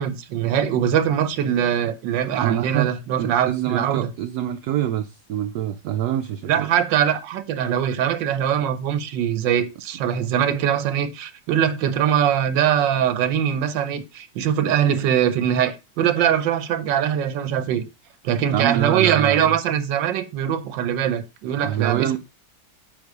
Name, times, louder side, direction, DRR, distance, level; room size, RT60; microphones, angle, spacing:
voice 1, 0.0-4.1 6.5-17.8 18.2-22.2, right 9 dB, 90° right, 1.4 m, -22 dB
voice 2, 2.3-2.9 3.2-6.7 18.5-19.6 21.5-22.2, right 11 dB, 70° right, 1.0 m, -25 dB
8.9 x 4.0 x 4.7 m
omnidirectional pair, 2.0 m